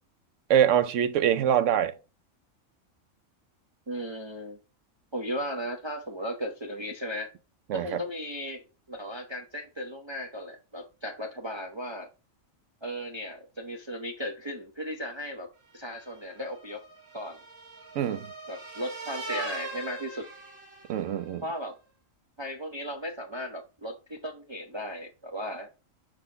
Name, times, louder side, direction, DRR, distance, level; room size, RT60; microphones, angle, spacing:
voice 1, 0.5-1.9 7.7-8.0 18.0-18.3 20.9-21.4, right 9 dB, 70° right, 0.9 m, -24 dB
voice 2, 3.9-4.6 5.1-7.3 7.7-12.1 12.8-16.8 17.1-17.4 18.5-20.3 21.4-21.8 22.4-25.7, equal, 30° right, 0.5 m, -36 dB
sound 1, 15.8-21.3, right 3 dB, 50° right, 1.6 m, -41 dB
4.9 x 3.9 x 5.5 m
omnidirectional pair, 1.4 m